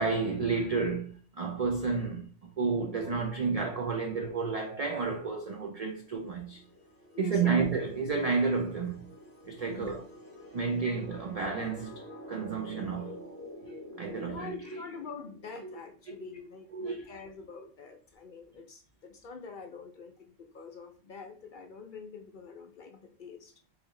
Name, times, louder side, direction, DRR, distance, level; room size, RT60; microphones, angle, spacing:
voice 1, 0.0-2.3 2.6-6.6 7.2-9.1 9.4-10.0 10.5-12.0 12.3-13.2 14.0-14.8 16.2-16.3 16.7-17.0, right 4 dB, 65° right, 0.3 m, -31 dB
sound 1, 5.6-16.1, left 1 dB, 15° left, 0.8 m, -48 dB
voice 2, 7.1-7.6 9.7-10.1 10.8-10.9 14.2-23.5, left 5 dB, 55° left, 0.6 m, -45 dB
3.2 x 3.0 x 3.6 m
omnidirectional pair, 1.2 m